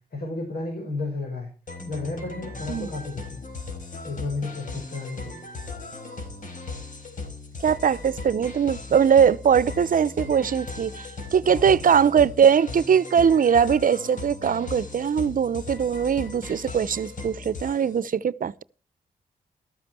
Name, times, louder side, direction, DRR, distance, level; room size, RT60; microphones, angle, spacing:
voice 1, 0.1-1.5 1.9-3.4 4.0-5.4 11.5-11.9, left 3 dB, 70° left, 5.4 m, -33 dB
sound 1, 1.7-18.0, left 3 dB, 55° left, 5.1 m, -38 dB
voice 2, 7.6-18.6, right 7 dB, 60° right, 0.8 m, -21 dB
13.5 x 13.5 x 4.5 m
supercardioid pair, 50°, 16 cm